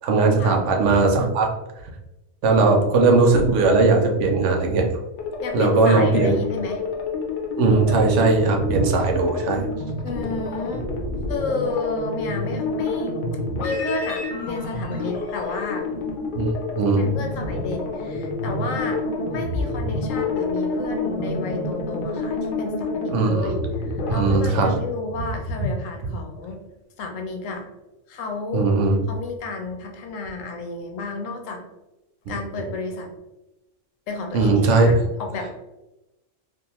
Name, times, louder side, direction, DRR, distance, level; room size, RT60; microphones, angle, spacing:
voice 1, 0.0-1.5 2.4-4.8 5.5-6.3 7.6-9.7 16.3-17.0 23.1-23.5 24.1-24.7 28.5-29.0 32.3-32.4 34.3-34.9, right 3 dB, 75° right, 2 dB, 0.9 m, -19 dB
sound 1, 5.1-24.1, left 3 dB, 60° left, 0.5 m, -28 dB
voice 2, 5.4-6.8 10.0-10.9 11.3-13.2 13.6-15.9 17.0-19.0 19.3-26.6 27.0-27.7 28.1-28.7 29.1-31.6 32.3-33.1 34.1-35.5, left 3 dB, 85° left, 3 dB, 1.0 m, -31 dB
2.4 x 2.4 x 2.8 m, 0.98 s
omnidirectional pair, 1.3 m